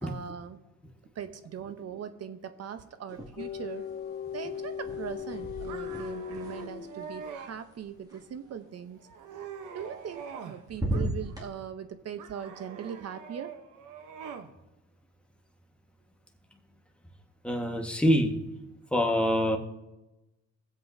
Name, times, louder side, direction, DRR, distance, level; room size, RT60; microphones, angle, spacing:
voice 1, 0.0-0.6 1.1-3.9 4.3-9.0 9.7-13.6, right 8 dB, 55° right, 10 dB, 0.9 m, -40 dB
sound 1, 3.1-3.8 4.1-8.2 9.8-10.4 10.7-11.5, right 1 dB, 10° right, 2.4 m, -37 dB
sound 2, 3.4-7.4, left 8 dB, 35° left, 0.4 m, -38 dB
sound 3, 5.7-7.6 8.1-8.6 9.0-10.6 10.9-11.6 12.2-14.5, right 6 dB, 80° right, 1.0 m, -44 dB
voice 2, 17.4-18.4 18.9-19.6, equal, 5° left, 1 dB, 1.5 m, -25 dB
21.5 x 7.8 x 2.7 m, 1.0 s
cardioid pair, 90°, 30 cm